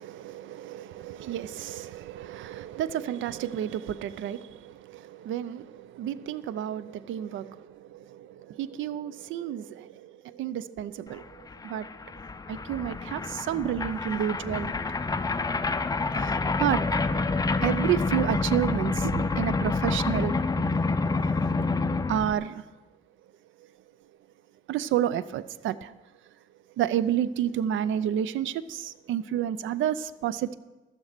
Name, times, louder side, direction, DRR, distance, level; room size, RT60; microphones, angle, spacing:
voice 1, 0.0-11.9 12.5-14.7 16.2-16.8 17.6-20.4 22.1-22.6 24.7-25.9 26.8-30.6, right 10 dB, 75° right, 17 dB, 0.5 m, -30 dB
sound 1, 11.2-11.3 11.5-22.3, left 3 dB, 20° left, 0.6 m, -28 dB
12.5 x 7.3 x 6.6 m, 1.2 s
cardioid pair, 90°, 20 cm